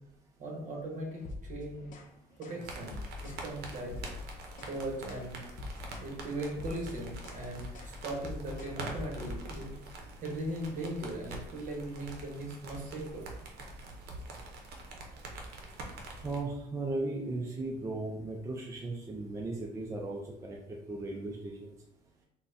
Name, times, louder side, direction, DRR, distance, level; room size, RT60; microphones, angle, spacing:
voice 1, 0.4-1.9 2.4-4.0 4.7-5.4 6.0-9.7 10.2-13.2, right 1 dB, 50° right, 0 dB, 1.0 m, -39 dB
sound 1, 1.2-2.1 2.4-2.6 2.9-3.5 3.8-4.8 5.1-5.3 5.6-6.1 6.4-9.7, left 2 dB, 50° left, 0.5 m, -44 dB
sound 2, 2.6-16.4, right 2 dB, 75° right, 0.6 m, -45 dB
voice 2, 16.2-21.8, right 2 dB, 20° right, -1 dB, 0.4 m, -37 dB
3.8 x 2.1 x 2.6 m, 0.83 s
cardioid pair, 110°, 17 cm